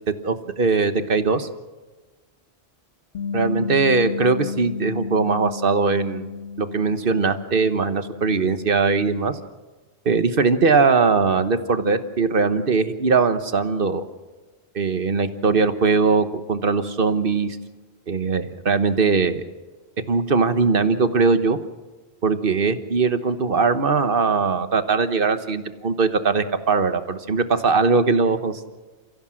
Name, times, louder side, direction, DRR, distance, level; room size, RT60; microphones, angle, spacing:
voice 1, 0.2-1.5 3.3-6.3 6.6-9.4 10.0-14.0 14.7-17.6 18.1-19.4 20.1-21.6 22.2-28.6, right 4 dB, 60° right, 10 dB, 1.3 m, -20 dB
Bass guitar, 3.1-9.4, left 5 dB, 70° left, 1.5 m, -33 dB
29.5 x 15.5 x 6.3 m, 1.3 s
omnidirectional pair, 1.0 m